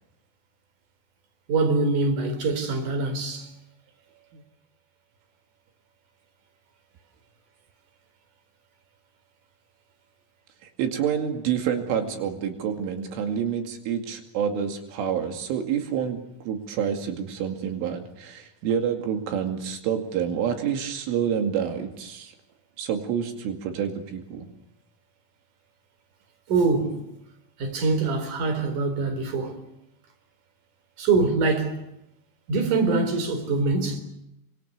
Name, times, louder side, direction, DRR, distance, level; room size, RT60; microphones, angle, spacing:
voice 1, 1.5-3.5 26.5-27.0 27.6-29.6 31.0-31.8 32.5-34.0, right 3 dB, 45° right, 5.3 m, -24 dB
voice 2, 10.6-22.3 22.8-24.5, right 8 dB, 85° right, 4.9 m, -28 dB
28.5 x 25.5 x 6.6 m
omnidirectional pair, 5.5 m